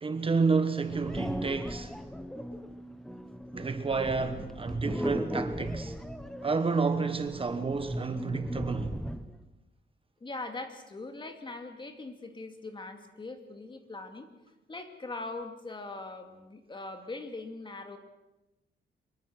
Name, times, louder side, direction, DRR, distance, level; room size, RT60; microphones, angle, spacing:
voice 1, 0.0-1.9 3.5-6.0 6.4-9.0, right 4 dB, 30° right, 1.2 m, -30 dB
sound 1, 0.9-9.4, equal, ahead, 1.1 m, -37 dB
voice 2, 10.2-14.3 14.7-18.0, left 2 dB, 25° left, 2.3 m, -41 dB
24.5 x 22.5 x 6.4 m
wide cardioid pair, 145°, 19 cm